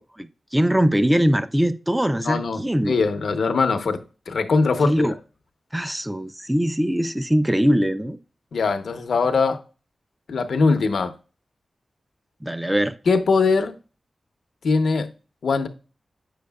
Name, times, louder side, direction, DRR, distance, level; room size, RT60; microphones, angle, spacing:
voice 1, 0.2-2.9 4.8-5.1 5.7-8.2 12.4-12.9, equal, 10° right, 0.4 m, -21 dB
voice 2, 2.2-4.0 4.3-5.1 8.5-9.6 10.3-11.1 13.1-13.7 14.6-15.1 15.4-15.7, left 4 dB, 80° left, 0.7 m, -21 dB
8.6 x 6.4 x 2.3 m
wide cardioid pair, 85°, 0 cm